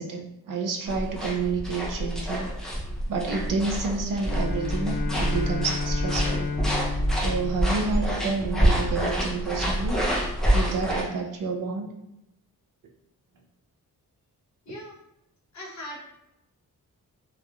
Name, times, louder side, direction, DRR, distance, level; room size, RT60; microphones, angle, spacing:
voice 1, 0.0-2.5 3.1-6.5 7.1-10.0 10.5-11.9, right 4 dB, 60° right, 2 dB, 0.5 m, -29 dB
sound 1, 0.9-11.0, equal, ahead, 0.5 m, -27 dB
Bowed string instrument, 4.2-8.5, left 5 dB, 85° left, 1.0 m, -33 dB
voice 2, 14.6-15.0 15.5-16.0, left 1 dB, 50° left, -3 dB, 0.7 m, -39 dB
2.9 x 2.3 x 2.2 m, 0.88 s
wide cardioid pair, 155°, 36 cm